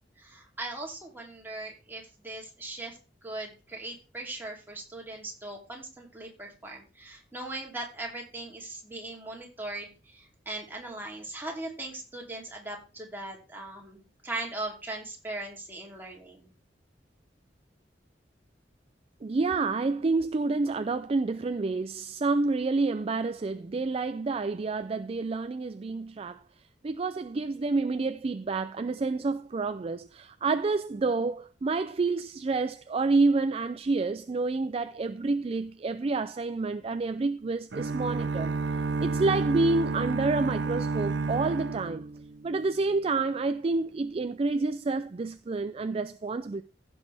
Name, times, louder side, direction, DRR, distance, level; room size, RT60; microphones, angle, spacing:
voice 1, 0.2-16.5, right 2 dB, 10° right, 3.0 m, -39 dB
voice 2, 19.2-26.4 26.8-38.5 39.0-42.1 42.4-46.6, right 3 dB, 35° right, 0.4 m, -28 dB
sound 1, 37.7-42.7, right 4 dB, 75° right, 0.7 m, -31 dB
16.0 x 6.2 x 3.4 m
head